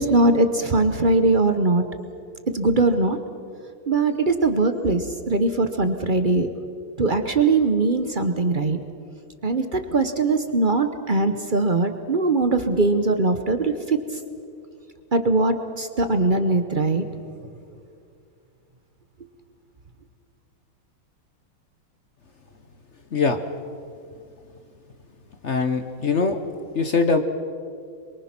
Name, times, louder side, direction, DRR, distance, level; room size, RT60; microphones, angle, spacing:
voice 1, 0.0-1.8 2.5-3.2 3.9-6.5 7.0-8.8 9.4-14.0 15.1-17.0, right 3 dB, 55° right, 8 dB, 0.5 m, -21 dB
voice 2, 25.4-26.4 26.7-27.2, left 4 dB, 50° left, 7 dB, 0.9 m, -22 dB
26.0 x 23.5 x 6.0 m, 2.4 s
omnidirectional pair, 2.4 m